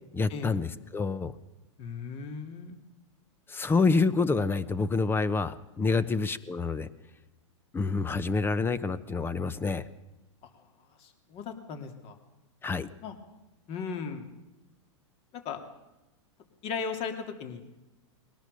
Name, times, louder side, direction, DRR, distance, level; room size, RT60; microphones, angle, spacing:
voice 1, 0.1-1.3 3.5-6.9 7.7-9.8 12.6-12.9, left 4 dB, 15° left, 16 dB, 0.9 m, -27 dB
voice 2, 1.8-2.8 5.9-6.0 11.0-12.1 13.0-13.2 13.7-14.3 15.3-15.6 16.6-17.7, left 5 dB, 40° left, 6 dB, 2.9 m, -37 dB
21.0 x 18.0 x 6.9 m, 1.0 s
hypercardioid pair, 120°, 16 cm